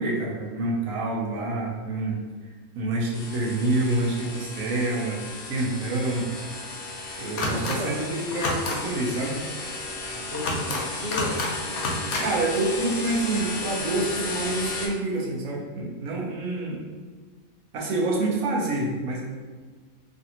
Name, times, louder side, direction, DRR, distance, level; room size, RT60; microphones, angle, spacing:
voice 1, 0.0-2.2 2.8-5.2 5.5-6.3 7.2-9.4 12.2-16.8 17.7-19.2, right 2 dB, 75° right, -3 dB, 1.1 m, -27 dB
sound 1, 3.1-14.9, left 2 dB, 60° left, 0.6 m, -34 dB
sound 2, 7.4-7.8 8.3-8.8 10.3-10.8 11.1-11.5 11.8-12.2, left 2 dB, 85° left, 1.1 m, -28 dB
voice 2, 7.5-8.1 10.1-11.4, left 1 dB, 30° right, -9 dB, 0.9 m, -34 dB
3.2 x 2.5 x 2.8 m, 1.5 s
omnidirectional pair, 1.5 m